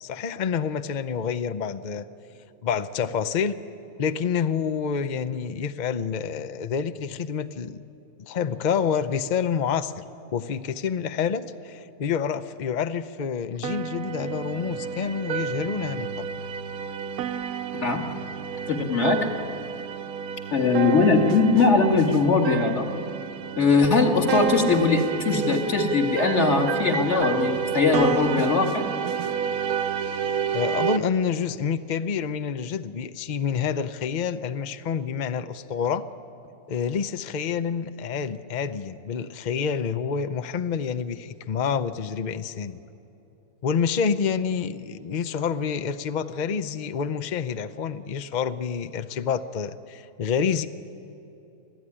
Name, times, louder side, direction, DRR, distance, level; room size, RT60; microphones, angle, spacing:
voice 1, 0.0-2.0 2.6-3.5 4.0-7.8 8.2-10.0 10.3-16.3 30.0-36.1 36.7-42.8 43.6-50.7, left 7 dB, 65° left, 11 dB, 0.4 m, -28 dB
sound 1, 13.6-31.0, right 7 dB, 70° right, 1.2 m, -30 dB
voice 2, 17.7-18.1 18.7-19.3 20.5-22.9 23.6-28.8, left 4 dB, 45° left, 2 dB, 2.3 m, -21 dB
26.0 x 16.0 x 10.0 m, 2.8 s
omnidirectional pair, 1.7 m